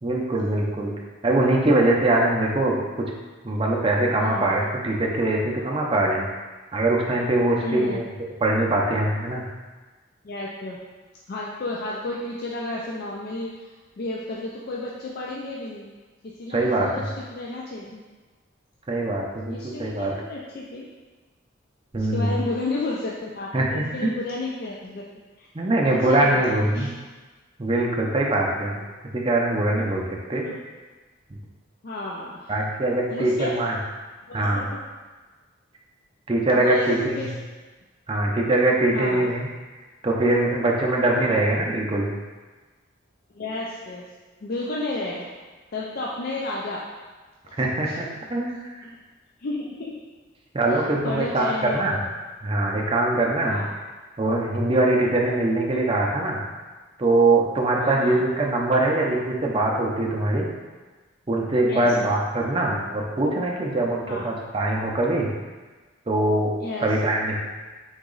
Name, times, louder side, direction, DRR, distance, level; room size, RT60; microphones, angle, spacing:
voice 1, 0.0-0.9 1.2-2.8 3.4-6.3 6.7-8.0 8.4-9.4 16.5-17.0 18.9-20.1 21.9-22.3 23.5-24.1 25.5-26.9 27.6-28.8 29.1-30.0 30.3-30.4 32.5-33.8 34.3-34.7 36.3-37.3 38.1-39.5 40.0-42.1 47.6-48.8 50.5-52.0 52.4-53.6 54.2-56.4 57.0-60.5 61.3-65.3 66.1-66.5 66.8-67.4, right 2 dB, 25° right, -1 dB, 0.5 m, -22 dB
voice 2, 4.2-4.5 7.5-8.0 10.2-10.8 11.3-13.7 14.0-15.9 16.2-18.0 19.5-20.9 22.0-25.1 25.4-25.5 26.1-26.9 28.5-28.9 30.4-30.6 31.8-32.5 33.1-33.5 34.3-34.8 36.5-37.3 38.9-39.3 41.1-41.4 43.3-44.0 44.4-45.3 45.7-46.8 47.4-47.6 47.8-48.0 48.8-49.0 49.4-50.0 50.7-52.1 53.4-53.7 55.0-55.1 57.8-58.2 61.7-62.1 64.1-64.3 66.6-66.9, left 2 dB, 50° left, -4 dB, 0.4 m, -32 dB
3.9 x 2.9 x 3.8 m, 1.3 s
head